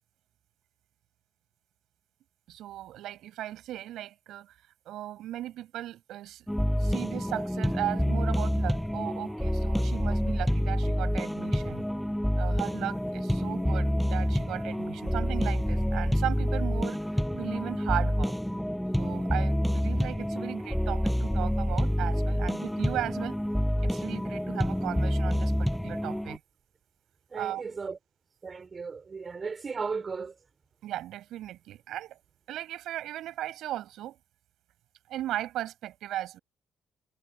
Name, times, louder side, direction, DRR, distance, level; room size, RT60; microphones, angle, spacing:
voice 1, 2.5-4.6 4.9-6.5 6.8-11.9 12.4-17.0 17.3-18.4 19.0-23.4 23.8-26.4 27.3-27.6 30.8-32.2 32.5-34.2 35.1-36.4, right 13 dB, 75° right, 7.2 m, -37 dB
sound 1, 6.5-26.4, equal, ahead, 5.2 m, -28 dB
voice 2, 27.3-28.0 28.4-30.4, right 5 dB, 30° right, 4.2 m, -35 dB
cardioid pair, 135°, 0 cm